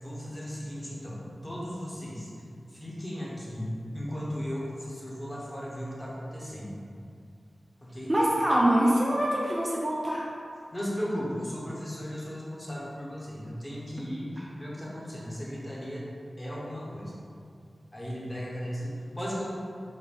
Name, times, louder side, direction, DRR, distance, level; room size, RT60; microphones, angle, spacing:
voice 1, 0.0-2.3 2.7-3.7 3.9-6.7 7.8-8.1 10.7-16.0 16.4-17.1 17.9-19.5, equal, 15° left, -6 dB, 0.9 m, -36 dB
voice 2, 8.1-10.3, right 1 dB, 25° right, -4 dB, 0.4 m, -24 dB
4.2 x 2.1 x 3.6 m, 2.4 s
wide cardioid pair, 75°, 0 cm